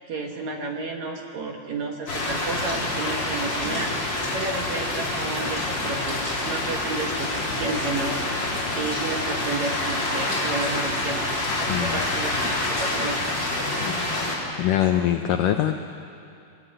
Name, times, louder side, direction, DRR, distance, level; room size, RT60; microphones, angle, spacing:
voice 1, 0.0-11.3 11.6-13.2 14.9-15.2, right 3 dB, 60° right, 2 dB, 2.1 m, -32 dB
sound 1, 2.1-14.4, left 2 dB, 30° left, 3.8 m, -27 dB
voice 2, 11.7-12.0 13.8-14.1 14.6-15.8, left 11 dB, 80° left, 6 dB, 1.9 m, -23 dB
27.0 x 17.0 x 9.0 m, 2.6 s
omnidirectional pair, 4.7 m